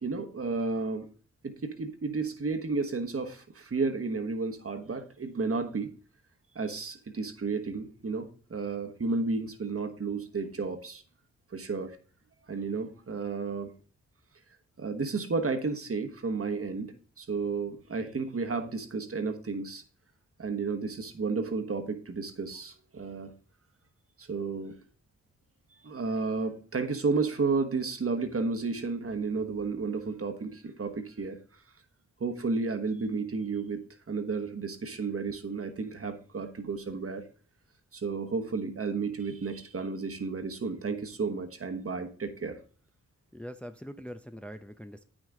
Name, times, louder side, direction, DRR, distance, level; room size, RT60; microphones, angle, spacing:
voice 1, 0.0-1.1 1.4-5.9 6.5-11.0 11.5-12.0 12.5-13.7 14.8-19.8 20.4-23.3 24.2-24.7 25.8-31.4 32.2-37.2 37.9-42.6, right 4 dB, 45° right, 1.2 m, -32 dB
voice 2, 43.3-45.1, equal, 5° left, 0.6 m, -43 dB
8.8 x 6.2 x 3.7 m
cardioid pair, 45°, 31 cm